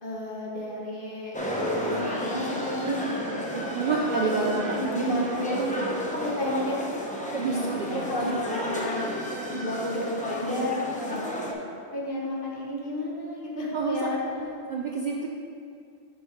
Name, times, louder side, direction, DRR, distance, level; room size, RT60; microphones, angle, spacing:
voice 1, 0.0-1.3 1.7-3.4 4.0-4.3 4.7-5.6 6.1-6.8 7.4-9.1 9.5-10.8 11.1-11.5 11.9-14.5, left 1 dB, 50° left, -4 dB, 1.3 m, -31 dB
sound 1, 1.3-11.5, equal, 10° left, 0.6 m, -31 dB
voice 2, 3.5-5.1 5.5-5.9 7.3-8.1 13.7-14.1 14.7-15.3, right 4 dB, 55° right, -1 dB, 0.5 m, -29 dB
5.8 x 5.5 x 4.4 m, 2.4 s
omnidirectional pair, 1.2 m